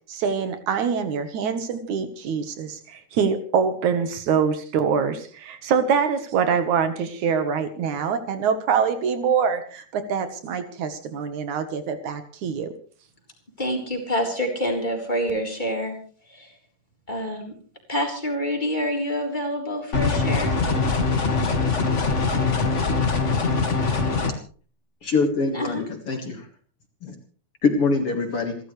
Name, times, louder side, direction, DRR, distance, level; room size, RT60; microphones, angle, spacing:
voice 1, 0.1-12.7, right 6 dB, 70° right, 9 dB, 2.7 m, -24 dB
voice 2, 13.6-16.0 16.3-16.5 17.1-17.5 17.9-21.1 25.5-25.8, equal, 15° left, 1 dB, 4.0 m, -27 dB
sound 1, 19.9-24.3, left 4 dB, 30° left, 1.6 m, -22 dB
voice 3, 25.0-26.5 27.0-27.2 27.6-28.6, left 4 dB, 50° left, 5 dB, 2.5 m, -24 dB
28.0 x 13.0 x 3.3 m, 0.42 s
omnidirectional pair, 3.6 m